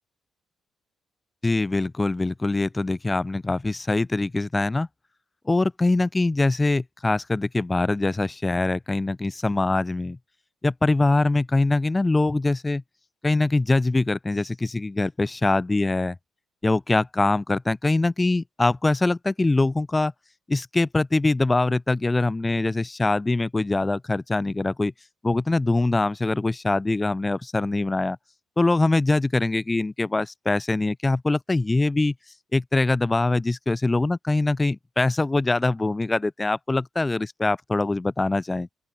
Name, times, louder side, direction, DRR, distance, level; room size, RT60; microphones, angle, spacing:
voice 1, 1.4-4.9 5.4-10.2 10.6-12.8 13.2-16.2 16.6-20.1 20.5-24.9 25.2-28.2 28.6-32.1 32.5-38.7, left 2 dB, 20° left, 3.3 m, -23 dB
open air
cardioid pair, 90°, 0 cm